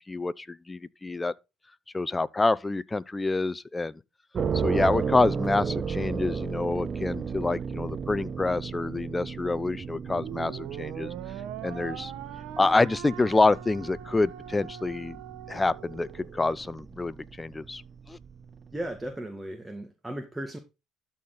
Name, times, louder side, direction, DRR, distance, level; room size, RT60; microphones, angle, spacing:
voice 1, 0.1-1.3 1.9-4.0 4.6-11.1 11.6-12.1 12.6-15.2 15.5-17.8 18.1-18.2, left 3 dB, 20° left, 0.7 m, -27 dB
sound 1, 4.3-19.1, right 6 dB, 40° right, 0.8 m, -35 dB
sound 2, 10.1-16.6, right 12 dB, 75° right, 1.0 m, -42 dB
voice 2, 18.7-20.6, right 1 dB, 10° right, 1.8 m, -36 dB
13.0 x 4.3 x 3.9 m
hypercardioid pair, 65°, 0 cm